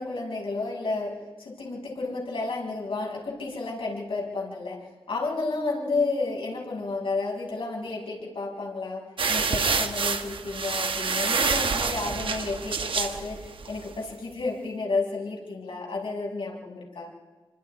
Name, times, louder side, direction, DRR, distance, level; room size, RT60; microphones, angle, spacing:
voice 1, 0.0-4.8 5.1-9.0 9.3-13.4 13.7-17.1, left 3 dB, 75° left, -3 dB, 6.3 m, -31 dB
sound 1, 9.2-13.9, right 5 dB, 70° right, 1.3 m, -27 dB
26.0 x 25.5 x 4.9 m, 1.3 s
wide cardioid pair, 145°, 9 cm